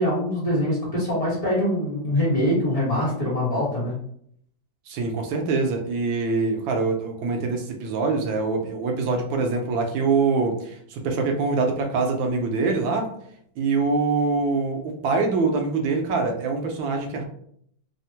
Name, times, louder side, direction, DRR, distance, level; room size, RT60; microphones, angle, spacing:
voice 1, 0.0-3.9, left 1 dB, 25° left, -9 dB, 0.9 m, -23 dB
voice 2, 4.9-13.1 13.6-17.2, right 4 dB, 85° right, 3 dB, 1.4 m, -24 dB
3.5 x 2.1 x 2.7 m, 0.67 s
omnidirectional pair, 2.1 m